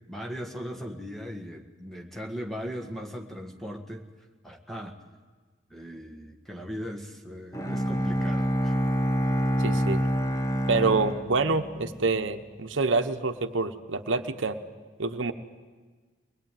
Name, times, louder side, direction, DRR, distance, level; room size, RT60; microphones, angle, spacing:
voice 1, 0.1-4.1 4.4-5.0 5.7-8.7, equal, ahead, 1 dB, 1.7 m, -38 dB
Bowed string instrument, 7.5-12.0, equal, 15° left, 1.1 m, -27 dB
voice 2, 9.6-10.0 10.7-14.6 15.0-15.3, right 3 dB, 75° right, 8 dB, 1.1 m, -26 dB
23.0 x 20.5 x 9.2 m, 1.4 s
head